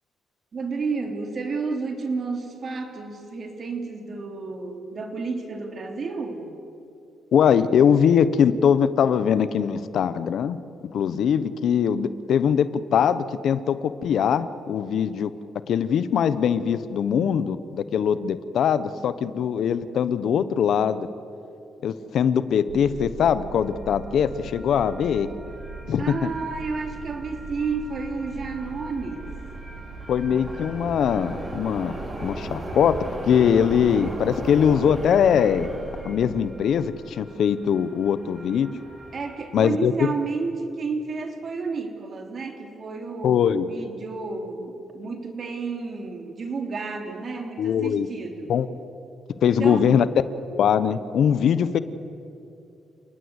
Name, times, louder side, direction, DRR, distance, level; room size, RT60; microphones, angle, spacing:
voice 1, 0.5-6.5 26.0-29.3 39.1-48.5 49.4-49.9, right 4 dB, 45° right, 4 dB, 3.3 m, -31 dB
voice 2, 7.3-10.6 10.9-15.3 15.7-21.1 21.8-25.3 25.9-26.1 30.1-31.9 32.2-33.0 33.2-35.7 36.0-38.7 39.5-39.9 43.2-43.7 47.6-48.1 48.5-48.7 49.4-50.1 50.5-51.8, left 8 dB, 70° left, 14 dB, 1.0 m, -21 dB
sound 1, 22.7-36.4, right 4 dB, 90° right, 3.0 m, -40 dB
sound 2, 23.5-39.4, right 1 dB, 25° right, 5.4 m, -39 dB
29.5 x 19.0 x 8.2 m, 2.7 s
cardioid pair, 100°, 0 cm